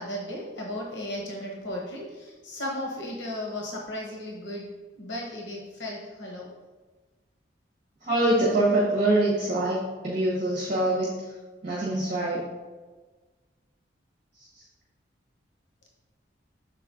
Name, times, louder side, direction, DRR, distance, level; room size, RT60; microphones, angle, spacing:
voice 1, 0.0-6.5, left 1 dB, 80° left, -2 dB, 1.2 m, -35 dB
voice 2, 8.0-9.8 10.0-11.3 11.6-12.4 14.5-14.6, right 1 dB, 45° right, -6 dB, 1.4 m, -24 dB
6.8 x 4.5 x 3.8 m, 1.3 s
head